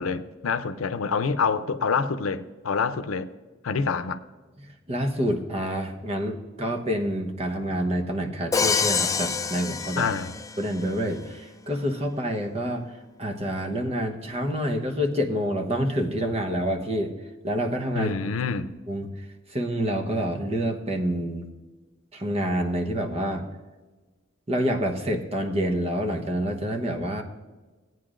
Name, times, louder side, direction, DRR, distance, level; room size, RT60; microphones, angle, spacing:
voice 1, 0.0-3.3 3.6-4.2 10.0-10.3 17.9-18.7, left 5 dB, 90° left, 0.6 m, -26 dB
voice 2, 4.9-10.1 10.6-17.1 17.4-18.3 18.9-21.5 22.1-23.4 24.5-27.2, equal, 30° right, 1.0 m, -27 dB
Crash cymbal, 8.5-10.7, left 5 dB, 15° left, 0.4 m, -26 dB
17.0 x 9.3 x 2.5 m
head